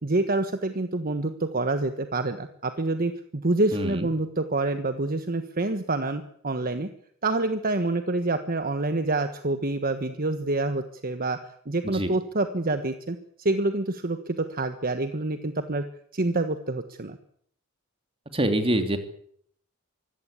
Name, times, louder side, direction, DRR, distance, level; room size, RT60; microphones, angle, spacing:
voice 1, 0.0-6.9 7.2-11.4 11.6-15.9 16.1-17.2, right 2 dB, 45° right, 9 dB, 1.4 m, -27 dB
voice 2, 3.7-4.1 11.8-12.1 18.3-19.0, right 1 dB, 25° right, 7 dB, 3.1 m, -25 dB
24.5 x 16.5 x 8.4 m, 0.66 s
head